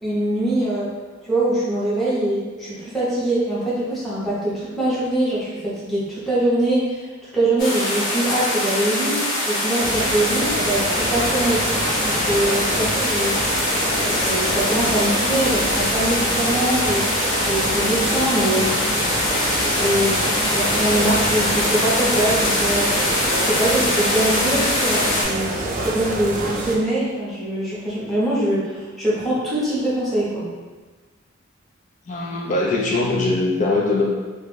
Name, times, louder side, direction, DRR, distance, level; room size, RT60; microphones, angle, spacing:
voice 1, 0.0-0.9 1.2-13.4 14.0-17.1 17.4-18.8 19.2-22.9 23.4-30.5, right 1 dB, ahead, -10 dB, 0.8 m, -23 dB
sound 1, 7.6-25.2, left 1 dB, 65° left, 1.0 m, -23 dB
sound 2, 9.8-26.8, right 1 dB, 40° right, 0.3 m, -27 dB
voice 2, 32.1-34.0, left 2 dB, 40° left, -3 dB, 0.4 m, -21 dB
2.4 x 2.2 x 3.2 m, 1.3 s
head